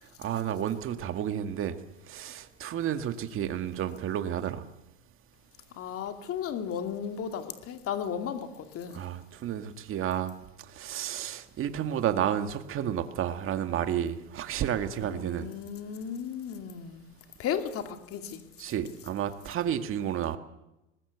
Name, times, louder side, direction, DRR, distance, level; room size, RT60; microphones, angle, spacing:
voice 1, 0.2-1.8 2.1-4.6 8.9-10.3 10.7-15.5 18.6-20.4, right 10 dB, 35° right, 2.0 m, -31 dB
voice 2, 5.7-9.0 15.0-17.1 17.4-18.4, left 8 dB, 40° left, 2.5 m, -35 dB
24.5 x 20.5 x 8.2 m
supercardioid pair, 125°, 35 cm